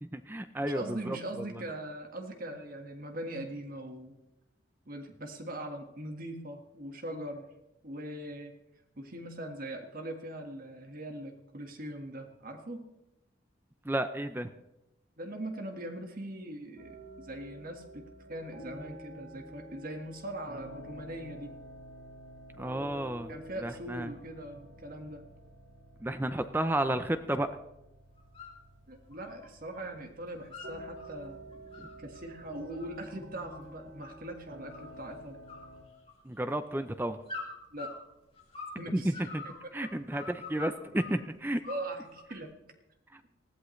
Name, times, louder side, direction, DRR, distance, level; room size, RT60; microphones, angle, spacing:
voice 1, 0.0-1.2 13.8-14.5 22.6-23.3 23.6-24.1 26.0-27.5 31.8-31.9 36.3-37.2 38.9-39.4 39.7-41.6, right 1 dB, 10° right, 9 dB, 0.5 m, -32 dB
voice 2, 0.6-4.2 4.9-7.5 7.8-8.5 9.0-12.9 15.2-21.6 23.3-25.2 28.9-35.4 37.7-38.0 38.8-39.7 41.7-42.5, right 1 dB, 45° right, 4 dB, 1.6 m, -41 dB
sound 1, 16.8-35.8, right 1 dB, 85° right, 4.7 m, -50 dB
sound 2, 28.2-28.6 28.9-29.9 30.1-31.1 31.5-34.3 34.7-35.2 35.5-36.4 37.3-38.8 39.1-41.2 41.6-42.4, left 3 dB, 30° left, 3.4 m, -45 dB
19.5 x 14.5 x 3.2 m, 0.91 s
head